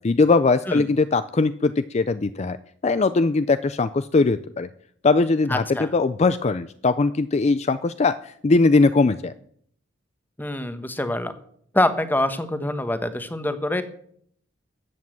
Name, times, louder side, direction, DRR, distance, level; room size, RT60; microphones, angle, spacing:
voice 1, 0.0-2.6 2.8-4.7 5.0-9.3, left 3 dB, 35° left, 13 dB, 0.4 m, -20 dB
voice 2, 5.5-5.9 10.4-11.3 11.7-13.8, left 1 dB, 10° left, 11 dB, 1.1 m, -25 dB
14.5 x 8.5 x 7.6 m, 0.65 s
head